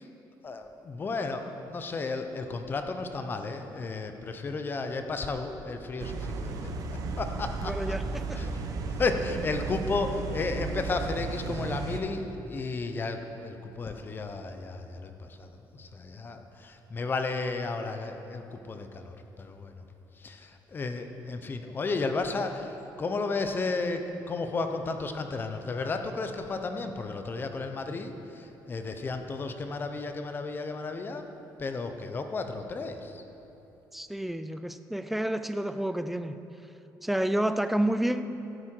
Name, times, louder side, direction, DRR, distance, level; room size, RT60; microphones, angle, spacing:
voice 1, 0.4-6.7 7.2-7.8 8.3-19.9 20.1-31.3 31.6-33.2, left 3 dB, 30° left, 7 dB, 0.8 m, -33 dB
sound 1, 6.0-12.0, right 4 dB, 60° right, 0.9 m, -34 dB
voice 2, 7.6-8.4 33.9-36.4 37.0-38.4, right 1 dB, ahead, 11 dB, 0.4 m, -30 dB
15.0 x 8.6 x 4.5 m, 3.0 s
cardioid pair, 135°, 7 cm